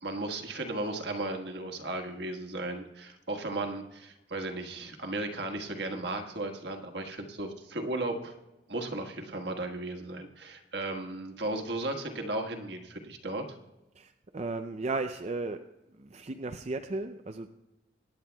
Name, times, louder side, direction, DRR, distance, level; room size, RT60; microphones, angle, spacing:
voice 1, 0.0-8.3 8.7-13.6, right 2 dB, 65° right, 4 dB, 1.5 m, -35 dB
voice 2, 14.0-15.6 16.0-17.5, right 3 dB, 35° right, 6 dB, 0.5 m, -35 dB
24.0 x 10.5 x 2.3 m, 1.0 s
head